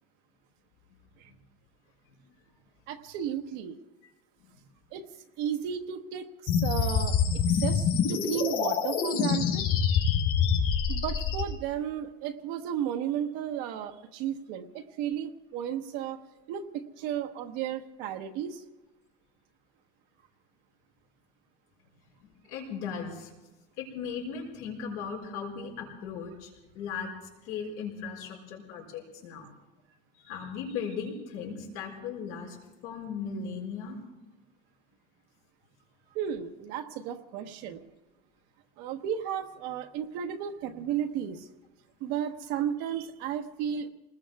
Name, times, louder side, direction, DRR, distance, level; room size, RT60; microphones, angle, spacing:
voice 1, 2.9-3.8 4.9-5.1 5.4-6.3 6.6-9.7 10.9-16.2 16.5-18.6 36.1-37.8 38.8-41.4 42.0-43.9, right 9 dB, 60° right, 6 dB, 1.1 m, -34 dB
sound 1, 6.5-11.4, left 7 dB, 45° left, 4.4 m, -26 dB
voice 2, 22.2-23.3 23.8-27.1 27.4-29.5 30.2-32.6 32.8-34.0, left 6 dB, 70° left, -2 dB, 5.3 m, -37 dB
29.5 x 20.0 x 2.3 m, 1.1 s
cardioid pair, 170°, 20 cm